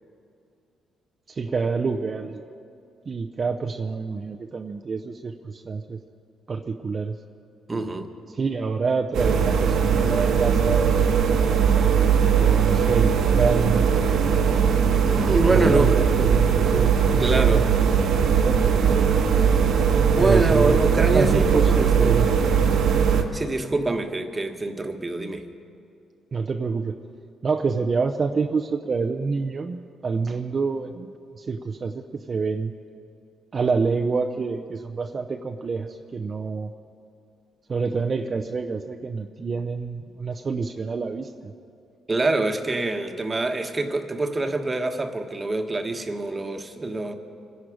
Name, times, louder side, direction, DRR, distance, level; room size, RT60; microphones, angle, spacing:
voice 1, 1.3-2.4 3.1-6.0 6.5-7.2 8.3-11.1 12.4-14.4 15.5-17.7 18.0-19.1 20.2-20.8 21.1-21.6 21.9-22.3 26.3-26.9 27.4-29.8 30.0-32.0 32.3-32.7 33.5-36.7 37.7-41.5, right 4 dB, 40° right, 4 dB, 0.7 m, -27 dB
voice 2, 7.7-8.1 15.1-16.0 17.2-17.7 20.1-22.1 23.3-25.5 42.1-47.1, right 2 dB, 25° right, 5 dB, 1.3 m, -25 dB
sound 1, 9.1-23.2, right 7 dB, 80° right, 1.4 m, -20 dB
25.0 x 11.0 x 5.0 m, 2.5 s
cardioid pair, 90°, 0 cm